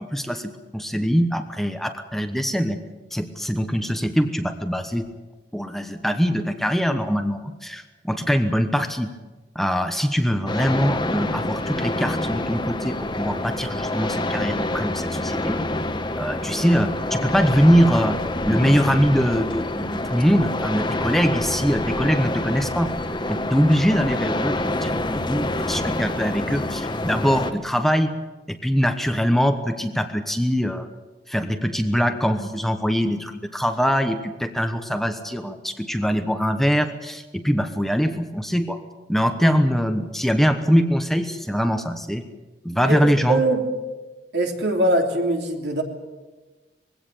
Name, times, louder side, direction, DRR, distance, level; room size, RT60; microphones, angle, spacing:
voice 1, 0.0-2.8 3.1-5.1 5.5-9.1 9.5-15.6 16.2-18.2 18.4-22.9 23.3-28.1 28.5-30.9 31.3-38.8 39.1-42.2 42.6-43.4, equal, ahead, 7 dB, 1.0 m, -22 dB
sound 1, 10.5-27.5, left 1 dB, 25° left, 1.3 m, -27 dB
voice 2, 42.8-43.6 44.3-45.8, right 1 dB, 70° right, 2 dB, 3.2 m, -22 dB
21.5 x 17.0 x 8.5 m, 1.2 s
head